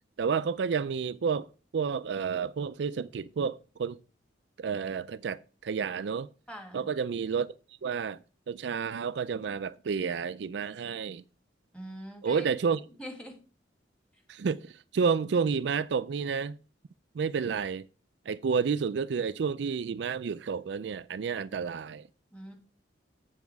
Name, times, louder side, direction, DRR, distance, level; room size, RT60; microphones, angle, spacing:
voice 1, 0.2-1.5 1.7-4.0 4.6-6.3 6.7-7.5 7.8-8.2 8.5-11.2 12.2-12.8 14.3-16.6 17.1-17.9 18.3-22.0, right 6 dB, 70° right, 0.4 m, -30 dB
voice 2, 6.5-6.9 11.7-12.4 12.7-13.4 22.3-22.6, equal, 5° left, 1.9 m, -43 dB
7.8 x 7.3 x 4.7 m
head